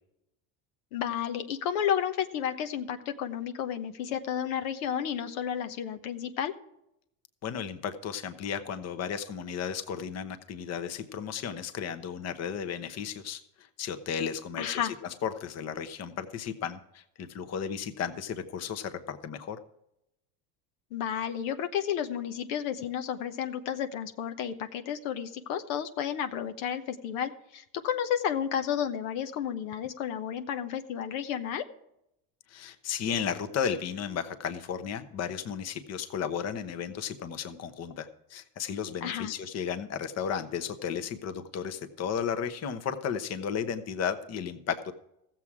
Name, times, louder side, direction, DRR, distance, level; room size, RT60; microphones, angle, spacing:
voice 1, 0.9-6.5 14.6-14.9 20.9-31.6 39.0-39.3, left 9 dB, 85° left, 7 dB, 1.1 m, -32 dB
voice 2, 7.4-14.8 15.2-19.6 32.5-44.9, left 7 dB, 40° left, 10 dB, 1.0 m, -34 dB
15.0 x 7.5 x 4.8 m, 0.82 s
supercardioid pair, 120°, 40 cm